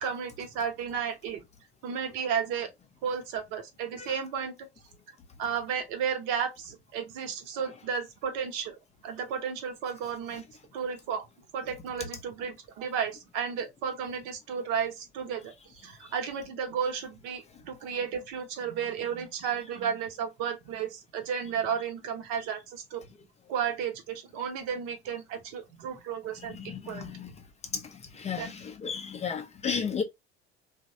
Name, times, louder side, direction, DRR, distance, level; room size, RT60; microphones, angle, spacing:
voice 1, 0.0-1.4 1.8-2.7 3.0-4.6 5.4-8.7 9.0-10.4 10.7-11.2 11.5-23.0 23.5-26.6 26.8-27.1 28.4-28.5, right 7 dB, 55° right, 0.8 m, -33 dB
voice 2, 26.5-27.3 28.2-30.0, left 6 dB, 20° left, 0.4 m, -33 dB
2.9 x 2.1 x 2.7 m
figure-of-eight pair, 65°, 32 cm